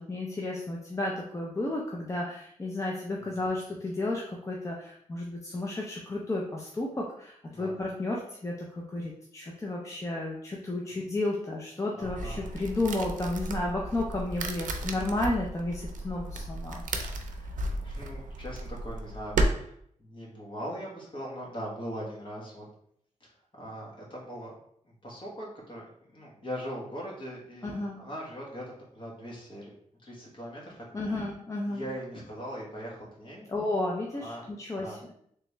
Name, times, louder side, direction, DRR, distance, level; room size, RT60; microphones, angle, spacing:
voice 1, 0.0-16.8 17.3-17.4 27.6-28.0 30.9-31.8 33.5-35.0, left 2 dB, 25° left, -2 dB, 0.5 m, -32 dB
voice 2, 7.5-7.8 10.8-10.9 12.0-12.5 17.5-22.7 23.2-24.5 24.8-25.9 26.1-29.7 30.0-31.2 31.6-33.5 34.2-34.4 34.7-35.0, equal, 40° left, -3 dB, 1.2 m, -41 dB
sound 1, 12.0-19.5, right 2 dB, 90° right, 0.5 m, -34 dB
3.3 x 3.0 x 3.2 m, 0.67 s
wide cardioid pair, 145°, 13 cm